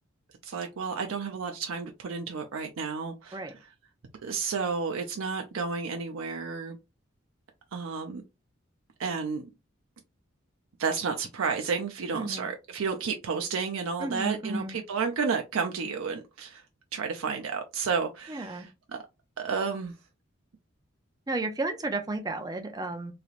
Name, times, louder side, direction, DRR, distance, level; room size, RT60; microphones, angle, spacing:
voice 1, 0.4-3.4 4.2-6.8 7.7-8.2 9.0-9.5 10.8-16.6 16.9-19.0 19.4-19.9, right 5 dB, 90° right, 0.5 m, -31 dB
voice 2, 12.1-12.5 14.0-14.8 18.3-18.7 21.3-23.1, right 2 dB, 20° right, 0.4 m, -33 dB
3.2 x 2.8 x 2.4 m
head